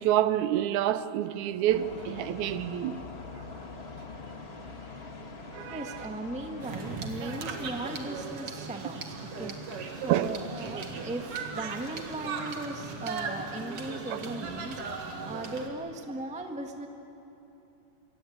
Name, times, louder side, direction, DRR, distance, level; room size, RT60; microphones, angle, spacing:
voice 1, 0.0-3.0 5.5-6.1 10.1-10.4 13.3-13.4 14.1-14.2, right 12 dB, 80° right, 2.1 m, -28 dB
sound 1, 1.7-7.0, left 3 dB, 30° left, 1.2 m, -43 dB
voice 2, 5.7-16.9, right 2 dB, 5° right, 0.7 m, -38 dB
sound 2, 6.6-15.7, right 4 dB, 50° right, 2.8 m, -37 dB
26.5 x 22.5 x 8.7 m
omnidirectional pair, 3.4 m